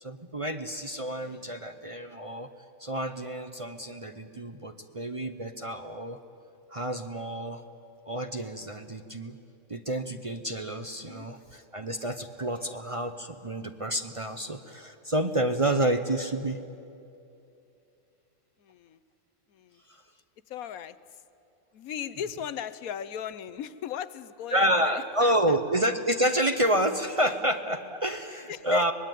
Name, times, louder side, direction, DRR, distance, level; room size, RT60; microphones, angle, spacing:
voice 1, 0.0-2.5 2.8-6.2 6.7-7.6 8.1-9.4 9.7-16.6 24.5-28.9, right 1 dB, 30° right, 8 dB, 0.7 m, -29 dB
voice 2, 1.2-1.6 10.8-11.3 12.5-12.8 18.6-19.0 19.5-19.8 20.5-21.2 21.7-25.6 28.5-28.9, left 9 dB, 85° left, 14 dB, 1.2 m, -38 dB
24.5 x 20.0 x 9.2 m, 2.7 s
omnidirectional pair, 1.5 m